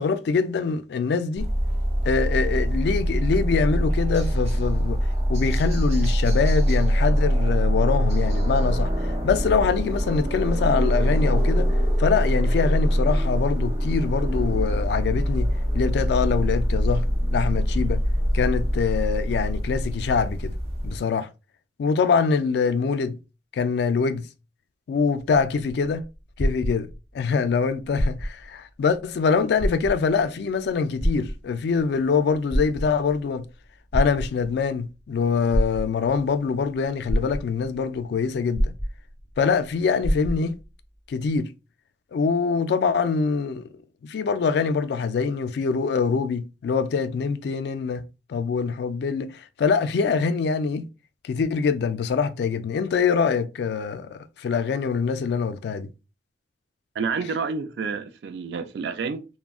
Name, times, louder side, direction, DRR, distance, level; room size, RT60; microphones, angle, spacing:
voice 1, 0.0-1.5 2.0-8.9 9.2-11.7 12.0-17.1 17.3-18.0 18.3-20.5 20.8-21.3 21.8-23.2 23.5-24.3 24.9-26.1 26.4-26.9 27.1-33.5 33.9-38.7 39.4-40.6 41.1-41.5 42.1-43.7 44.0-50.8 51.2-55.9, left 5 dB, 65° left, 0.3 m, -24 dB
sound 1, 1.4-21.0, equal, 35° right, 0.7 m, -23 dB
sound 2, 25.4-27.3 27.9-28.5 29.0-29.1 29.5-30.2 31.0-31.8 32.3-33.2 33.9-34.7 35.5-36.2 36.7-36.8 37.1-37.8 38.5-39.4 39.6-39.7 40.0-40.6 41.4-41.5, equal, 5° right, 0.9 m, -26 dB
voice 2, 57.0-59.3, right 5 dB, 65° right, 0.4 m, -29 dB
3.5 x 2.1 x 2.3 m
head